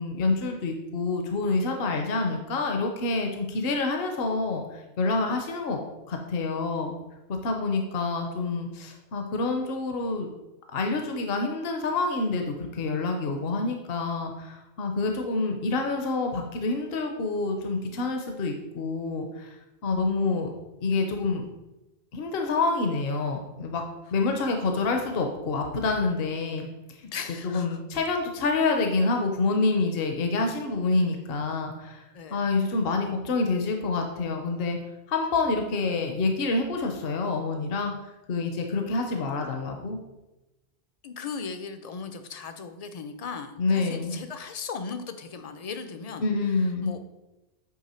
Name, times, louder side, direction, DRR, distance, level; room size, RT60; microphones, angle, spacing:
voice 1, 0.0-5.8 6.1-7.0 7.4-10.3 10.7-19.5 19.8-20.5 20.8-21.4 22.1-23.8 24.1-26.7 27.4-32.0 32.3-34.8 35.1-37.9 38.3-40.0 43.6-44.2 46.2-46.9, left 3 dB, 65° left, 3 dB, 0.9 m, -27 dB
voice 2, 27.0-27.8 32.1-32.4 41.0-46.3 46.8-47.0, left 5 dB, 50° left, 8 dB, 0.5 m, -37 dB
8.7 x 3.3 x 4.3 m, 0.99 s
omnidirectional pair, 1.1 m